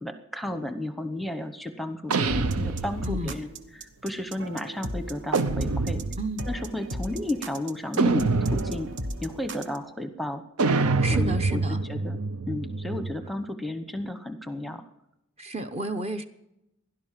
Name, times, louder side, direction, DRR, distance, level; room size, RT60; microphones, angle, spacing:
voice 1, 0.0-3.5 4.0-6.0 6.5-8.9 9.2-10.4 11.1-11.6 11.9-12.2 12.5-14.8, left 1 dB, ahead, 9 dB, 0.9 m, -33 dB
sound 1, 2.1-3.4 5.3-6.4 8.0-9.0 10.6-13.3, right 3 dB, 85° right, 0.8 m, -26 dB
sound 2, 2.3-9.8, right 1 dB, 55° right, 1.3 m, -36 dB
voice 2, 3.0-3.4 6.2-6.4 10.8-11.8 15.4-16.3, right 1 dB, 30° right, 8 dB, 0.9 m, -32 dB
17.0 x 11.5 x 7.5 m, 0.85 s
head